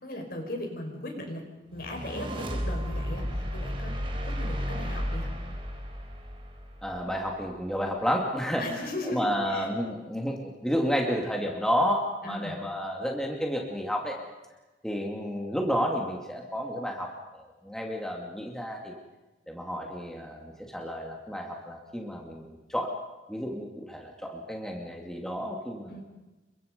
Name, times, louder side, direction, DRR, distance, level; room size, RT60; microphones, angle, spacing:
voice 1, 0.0-1.5 1.7-3.9 4.2-5.4 8.5-9.7 12.2-12.6 25.9-26.0, left 1 dB, 55° left, 3 dB, 5.5 m, -37 dB
sound 1, 1.8-7.1, equal, 30° right, 3.6 m, -33 dB
voice 2, 6.8-8.7 9.0-14.2 14.8-19.0 19.5-23.0 23.3-26.0, equal, 5° left, 0 dB, 2.4 m, -31 dB
29.5 x 24.0 x 5.3 m, 1.1 s
head